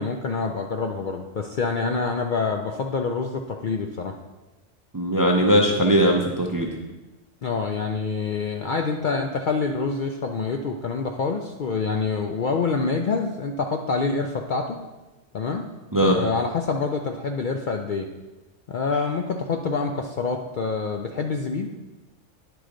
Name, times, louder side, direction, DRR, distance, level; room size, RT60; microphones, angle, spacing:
voice 1, 0.0-4.2 7.4-14.8 15.3-15.6 16.1-18.1 18.7-21.7, left 4 dB, 60° left, 3 dB, 0.5 m, -26 dB
voice 2, 4.9-6.7 15.9-16.2, equal, 25° right, 1 dB, 0.4 m, -19 dB
9.9 x 4.9 x 3.8 m, 1.1 s
omnidirectional pair, 1.3 m